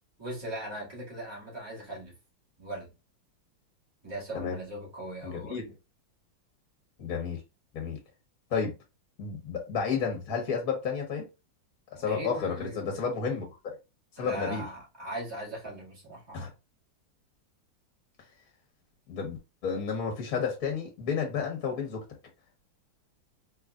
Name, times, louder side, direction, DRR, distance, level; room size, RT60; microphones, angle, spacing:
voice 1, 0.2-2.1 2.6-2.9 4.0-5.6 12.1-13.0 14.2-16.5, right 1 dB, 15° right, 1.6 m, -39 dB
voice 2, 5.2-5.6 7.0-7.4 7.7-8.0 8.5-8.7 9.2-11.3 11.9-13.5 14.2-14.6 16.3-16.5 19.1-22.0, left 6 dB, 55° left, 1.2 m, -31 dB
3.8 x 3.1 x 2.3 m
omnidirectional pair, 2.1 m